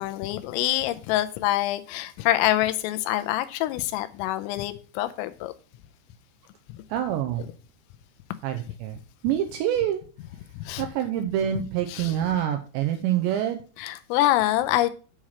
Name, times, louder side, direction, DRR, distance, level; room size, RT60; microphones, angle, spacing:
voice 1, 0.0-5.5 6.7-6.8 10.7-10.9 11.9-12.1 13.8-14.9, left 14 dB, 90° left, 12 dB, 3.3 m, -25 dB
voice 2, 6.9-7.4 8.4-9.0 9.2-10.0 10.8-13.6, right 11 dB, 90° right, 6 dB, 2.6 m, -26 dB
8.6 x 4.9 x 5.7 m, 0.37 s
omnidirectional pair, 5.8 m